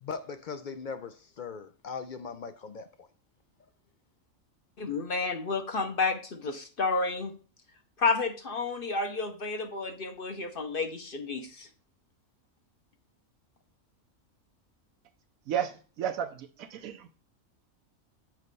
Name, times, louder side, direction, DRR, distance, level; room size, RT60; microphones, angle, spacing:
voice 1, 0.0-3.1, left 5 dB, 65° left, 0.5 m, -39 dB
voice 2, 4.8-7.3 8.0-11.7, left 4 dB, 45° left, 1.0 m, -31 dB
voice 3, 15.5-17.1, right 9 dB, 85° right, 1.1 m, -33 dB
7.4 x 3.2 x 5.3 m
omnidirectional pair, 1.4 m